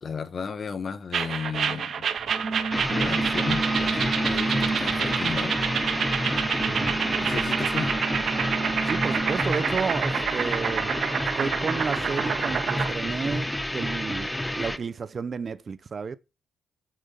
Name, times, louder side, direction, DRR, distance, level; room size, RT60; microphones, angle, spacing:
voice 1, 0.0-2.1 2.9-5.6 7.2-7.9, left 6 dB, 45° left, 1.3 m, -34 dB
sound 1, 1.1-12.9, right 7 dB, 60° right, 1.3 m, -28 dB
sound 2, 2.2-9.4, right 3 dB, 25° right, 2.8 m, -31 dB
sound 3, 2.7-14.8, left 1 dB, 10° left, 0.9 m, -30 dB
voice 2, 6.6-7.3 8.9-10.9 11.4-16.2, right 5 dB, 40° right, 0.7 m, -32 dB
9.1 x 7.2 x 5.4 m
cardioid pair, 90°, 0 cm